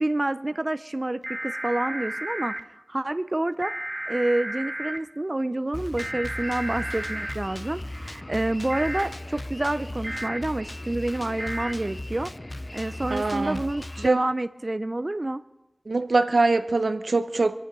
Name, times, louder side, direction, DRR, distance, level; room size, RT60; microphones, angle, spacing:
voice 1, 0.0-3.7 4.1-12.3 12.7-15.4, right 1 dB, 35° right, 0.5 m, -28 dB
sound 1, 1.2-2.6 3.6-5.0 6.0-7.3 8.7-9.1 10.0-10.4 11.4-11.7, right 1 dB, 15° right, 1.1 m, -33 dB
Drum kit, 5.7-14.1, left 1 dB, 30° left, 0.5 m, -37 dB
voice 2, 13.1-13.6 14.0-14.2 15.9-17.6, right 3 dB, 75° right, 0.8 m, -23 dB
26.0 x 8.9 x 5.2 m
wide cardioid pair, 55°, 0 cm